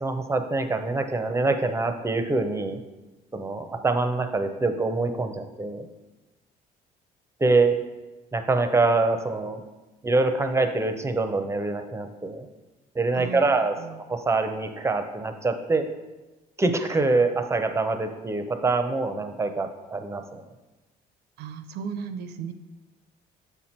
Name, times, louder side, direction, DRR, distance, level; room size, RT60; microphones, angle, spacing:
voice 1, 0.0-2.8 3.3-5.9 7.4-7.8 8.3-9.6 10.0-12.5 12.9-15.9 16.6-20.4, right 3 dB, 15° right, 7 dB, 0.5 m, -25 dB
voice 2, 13.1-13.5 13.8-14.0 21.4-22.5, right 6 dB, 80° right, 10 dB, 0.5 m, -35 dB
6.9 x 4.3 x 4.3 m, 1.1 s
cardioid pair, 110°, 17 cm